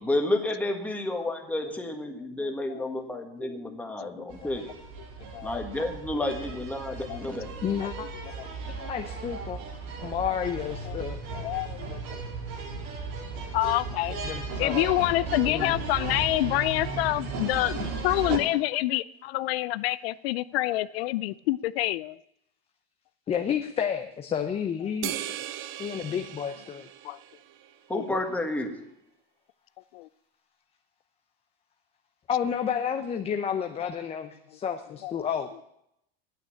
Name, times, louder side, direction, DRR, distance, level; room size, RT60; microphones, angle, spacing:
voice 1, 0.0-4.6 5.4-7.5 27.9-28.8, left 1 dB, 5° left, 3 dB, 1.5 m, -30 dB
voice 2, 2.7-3.6 4.0-4.5 5.3-5.6 7.1-7.5 7.8-7.9 8.4-8.5 8.8-8.9 10.2-10.3 10.8-11.0 11.4-12.2 13.5-14.2 14.6-22.2 27.0-27.2 27.9-28.0 29.9-30.1 35.0-35.1, left 17 dB, 80° left, 17 dB, 0.5 m, -28 dB
sound 1, 4.3-18.4, right 4 dB, 60° right, 3.6 m, -36 dB
voice 3, 7.6-8.1 8.9-9.6 10.0-11.2 14.2-14.8 15.5-15.8 23.3-25.1 25.8-26.9 32.3-34.3 34.6-35.6, left 8 dB, 20° left, 6 dB, 0.7 m, -30 dB
sound 2, 25.0-27.7, right 13 dB, 45° right, 0.7 m, -38 dB
9.2 x 9.1 x 8.5 m, 0.79 s
supercardioid pair, 140°, 30 cm